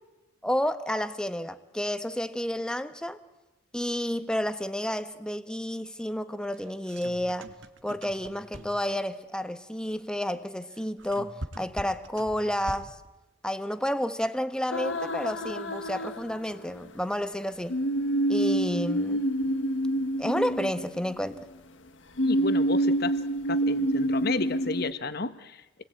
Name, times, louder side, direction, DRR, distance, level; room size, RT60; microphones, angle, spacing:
voice 1, 0.4-3.2 3.7-7.5 7.8-13.0 13.4-17.8 18.3-19.2 20.2-21.4, equal, 5° left, 1.1 m, -30 dB
sound 1, 6.5-9.0 10.6-13.1, right 1 dB, 65° right, 1.8 m, -43 dB
sound 2, 14.7-16.9 17.7-21.4 22.2-24.9, right 1 dB, 65° left, 1.4 m, -27 dB
voice 2, 22.2-23.2 23.5-25.8, left 3 dB, 50° left, 1.3 m, -32 dB
28.5 x 20.5 x 9.0 m
head